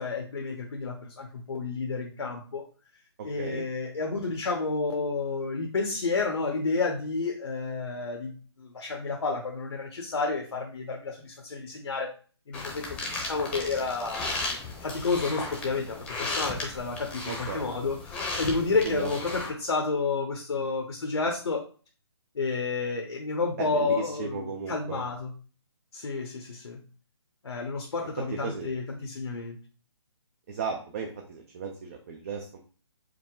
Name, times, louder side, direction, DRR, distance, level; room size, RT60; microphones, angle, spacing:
voice 1, 0.0-2.7 3.2-12.1 12.5-14.4 14.8-21.6 22.3-25.3 25.9-26.8 27.4-29.6, left 4 dB, 80° left, 2 dB, 0.8 m, -30 dB
voice 2, 3.2-3.6 17.2-17.7 18.8-19.2 23.6-25.1 28.3-28.7 30.5-32.6, right 5 dB, 30° right, 2 dB, 0.5 m, -35 dB
sound 1, 12.5-19.5, left 3 dB, 10° left, 0.8 m, -35 dB
4.8 x 2.1 x 3.7 m, 0.39 s
hypercardioid pair, 155°, 14 cm